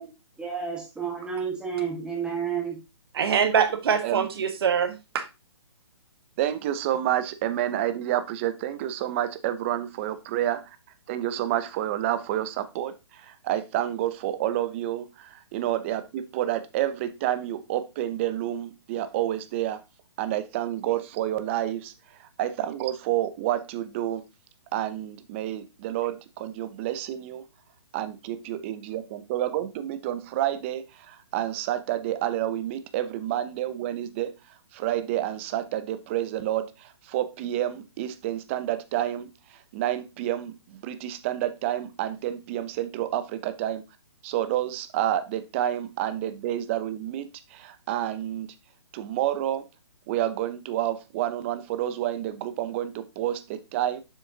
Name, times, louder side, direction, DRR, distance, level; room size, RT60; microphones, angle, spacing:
voice 1, 0.4-2.8, right 7 dB, 5° right, -2 dB, 1.5 m, -30 dB
voice 2, 3.1-5.2, right 7 dB, 55° right, 8 dB, 1.4 m, -24 dB
voice 3, 6.4-10.8 11.1-19.8 20.2-21.9 22.2-24.2 24.7-27.4 27.9-34.4 34.7-43.9 44.2-48.5 49.0-49.7 50.1-54.0, right 12 dB, 25° right, 12 dB, 0.6 m, -29 dB
7.2 x 6.4 x 2.8 m, 0.25 s
hypercardioid pair, 155°, 15 cm